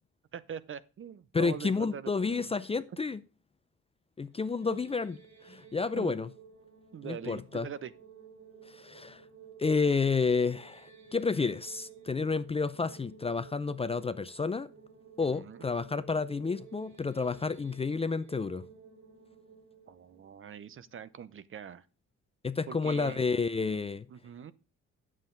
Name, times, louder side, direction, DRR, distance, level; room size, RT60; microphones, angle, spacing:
voice 1, 0.3-2.5 4.6-4.8 6.0-6.2 6.9-7.9 15.2-15.7 19.9-21.8 22.7-23.2 24.1-24.5, right 8 dB, 45° right, 0.7 m, -43 dB
voice 2, 1.3-3.2 4.2-6.3 7.0-7.7 8.7-9.2 9.6-14.7 15.2-18.7 22.4-24.1, left 4 dB, 20° left, 0.4 m, -30 dB
sound 1, 4.3-21.4, right 6 dB, 70° right, 3.1 m, -54 dB
9.0 x 7.4 x 3.8 m
cardioid pair, 90°, 30 cm